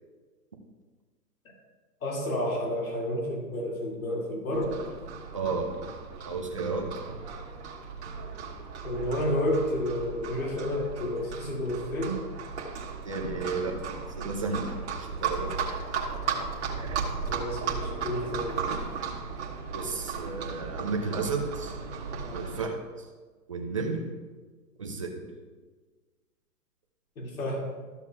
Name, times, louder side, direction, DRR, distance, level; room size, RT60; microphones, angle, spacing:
voice 1, 2.0-4.8 8.8-12.2 17.2-18.7 27.2-27.7, left 1 dB, 55° left, -2 dB, 2.5 m, -30 dB
Livestock farm animals working animals, 4.5-22.6, right 6 dB, 45° right, 1.4 m, -36 dB
voice 2, 5.3-5.7 6.3-6.9 13.0-13.9 14.2-14.7 15.0-15.7 16.8-17.0 19.7-21.8 22.3-23.1 23.5-24.0 24.8-25.2, right 4 dB, 20° right, 1 dB, 0.6 m, -32 dB
13.5 x 7.0 x 2.4 m, 1.4 s
hypercardioid pair, 155°, 48 cm